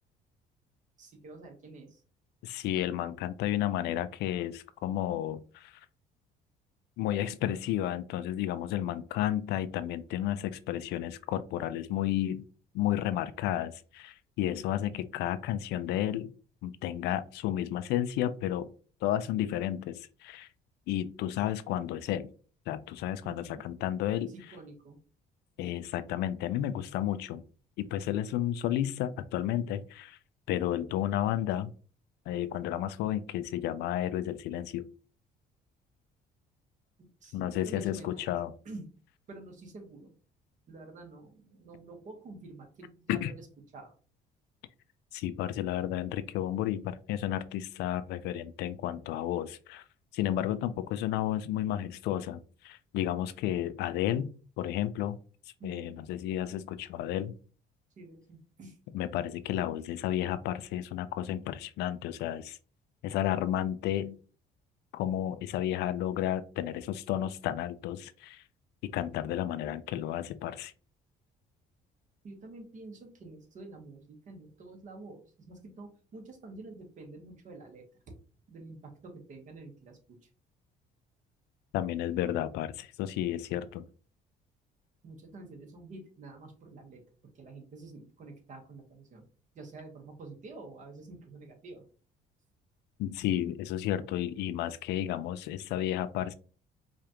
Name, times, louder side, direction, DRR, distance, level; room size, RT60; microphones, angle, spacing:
voice 1, 1.0-2.0 23.2-23.7 24.3-25.0 37.0-38.4 38.6-38.9 39.3-40.1 40.7-43.5 43.7-43.9 55.6-56.0 58.0-58.8 72.2-78.1 78.5-80.3 85.0-89.3 89.5-91.9, right 2 dB, 45° right, 1.2 m, -48 dB
voice 2, 2.4-5.8 7.0-12.5 12.7-16.3 16.6-18.7 19.0-20.5 20.9-22.3 22.7-24.3 25.6-27.4 27.8-30.2 30.5-31.7 32.3-34.8 37.3-38.5 43.1-43.3 45.1-49.8 50.1-55.2 55.6-57.4 58.9-62.6 63.0-64.2 64.9-68.4 68.8-70.7 81.7-83.9 93.0-96.3, left 12 dB, 80° left, 0.4 m, -32 dB
4.9 x 2.4 x 2.9 m
cardioid pair, 110°, 17 cm